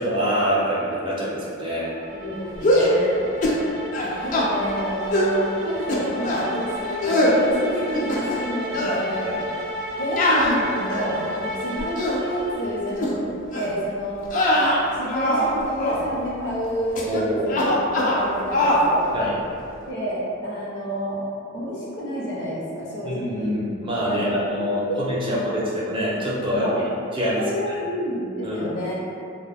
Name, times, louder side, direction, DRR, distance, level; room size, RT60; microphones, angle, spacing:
voice 1, 0.0-1.9 4.0-4.2 9.2-9.4 17.1-17.6 19.1-19.3 23.0-26.7 27.1-27.8 28.4-28.7, equal, 25° right, -7 dB, 0.4 m, -25 dB
sound 1, 1.7-13.0, left 1 dB, 85° right, 0.4 m, -33 dB
voice 2, 2.1-3.3 4.2-9.3 10.0-14.3 14.9-19.0 19.9-21.2 21.5-23.5 24.1-24.3 24.9-25.7 26.6-26.8 27.3-29.1, equal, 60° left, -7 dB, 0.7 m, -29 dB
sound 2, 2.6-3.0 3.4-3.6 3.9-4.5 5.1-5.4 5.9-6.5 7.0-7.4 7.9-8.5 8.7-9.0 10.2-11.2 11.8-12.2 13.0-13.1 13.5-13.7 14.3-15.5 15.8-16.0 17.0-17.2 17.5-18.2 18.5-18.9, left 1 dB, 40° left, 0.3 m, -22 dB
2.1 x 2.1 x 3.3 m, 2.5 s
head